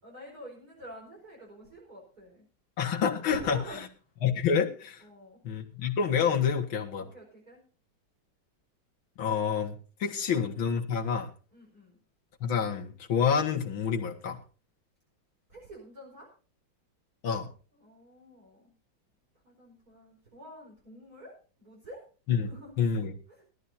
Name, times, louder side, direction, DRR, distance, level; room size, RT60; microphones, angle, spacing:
voice 1, 0.0-2.4 3.3-3.8 5.0-5.4 7.0-7.6 10.2-10.3 11.5-12.0 15.5-16.3 17.8-18.7 19.4-21.3 21.6-22.0 22.4-22.7 23.3-23.4, right 1 dB, 45° right, -2 dB, 5.3 m, -48 dB
voice 2, 2.8-3.9 4.2-5.0 5.4-7.1 9.2-11.3 12.4-14.4 17.2-17.5 22.3-22.5 22.8-23.1, left 7 dB, 85° left, 3 dB, 2.5 m, -28 dB
20.5 x 13.0 x 2.7 m, 0.36 s
omnidirectional pair, 2.2 m